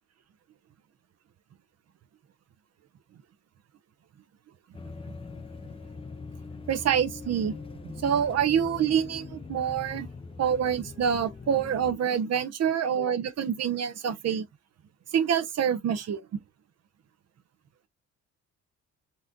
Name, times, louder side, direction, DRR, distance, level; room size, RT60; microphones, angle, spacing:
sound 1, 4.7-12.0, left 4 dB, 20° left, 0.5 m, -42 dB
voice 1, 6.7-7.6 7.8-10.1 10.4-14.4 15.1-16.2, right 8 dB, 55° right, 0.8 m, -26 dB
4.2 x 2.5 x 3.6 m
cardioid pair, 90°, 30 cm